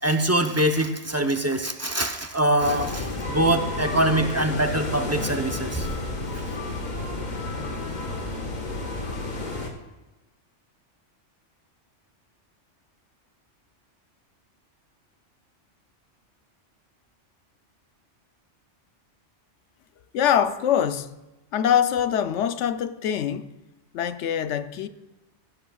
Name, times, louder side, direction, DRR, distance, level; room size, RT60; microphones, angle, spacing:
voice 1, 0.0-6.0, right 1 dB, 15° right, 0.5 m, -24 dB
sound 1, 2.6-9.7, left 2 dB, 40° left, 1.5 m, -31 dB
voice 2, 20.1-21.1 21.5-23.5 23.9-24.9, left 9 dB, 75° left, 0.9 m, -24 dB
15.5 x 12.5 x 2.3 m
omnidirectional pair, 1.2 m